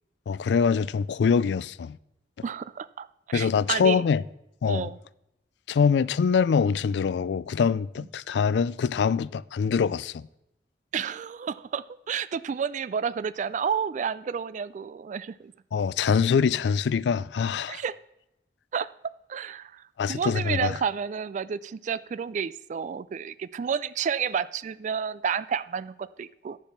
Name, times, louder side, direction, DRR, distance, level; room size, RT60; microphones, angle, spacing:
voice 1, 0.3-2.0 3.3-4.2 4.6-4.9 5.7-10.2 15.7-17.8 20.0-20.8, left 6 dB, 75° left, 0.3 m, -24 dB
voice 2, 2.4-4.0 4.7-5.0 8.0-8.1 10.9-15.5 17.7-18.0 18.7-18.9 19.3-19.8 20.1-26.6, right 7 dB, 45° right, 0.3 m, -31 dB
11.5 x 7.1 x 5.8 m
head